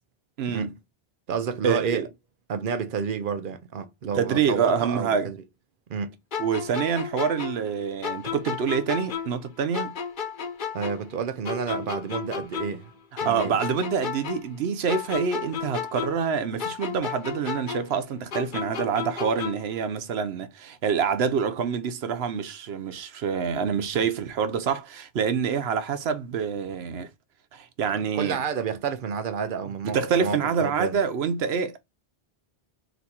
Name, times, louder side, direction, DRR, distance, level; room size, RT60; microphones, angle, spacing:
voice 1, 0.4-0.7 1.6-2.1 4.1-5.3 6.4-10.0 13.2-27.1 27.5-28.4 29.8-31.8, right 6 dB, 85° right, 0.9 m, -26 dB
voice 2, 1.3-2.1 2.5-5.4 5.9-6.2 10.7-12.9 13.2-13.6 24.0-24.1 28.1-31.0, right 6 dB, 60° right, 0.7 m, -30 dB
sound 1, 6.3-9.5 9.7-12.9 13.2-16.3 16.6-19.7, left 7 dB, 55° left, 0.9 m, -33 dB
4.0 x 2.6 x 4.2 m
omnidirectional pair, 1.0 m